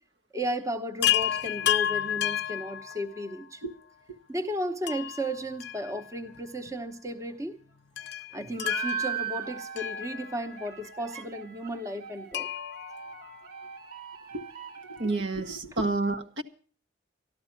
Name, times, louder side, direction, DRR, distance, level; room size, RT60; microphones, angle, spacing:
voice 1, 0.3-3.6 4.3-7.6 8.3-12.5, equal, 15° right, 7 dB, 0.9 m, -34 dB
Chime, 1.0-3.4 4.9-6.4 6.7-6.8 8.0-10.7 12.3-13.9 15.5-15.6 15.8-15.9, left 11 dB, 60° left, 0.5 m, -31 dB
sound 1, 8.5-15.6, right 8 dB, 55° right, 1.5 m, -39 dB
voice 2, 14.9-16.4, right 2 dB, 75° right, 5 dB, 1.3 m, -30 dB
13.0 x 12.5 x 5.8 m, 0.42 s
head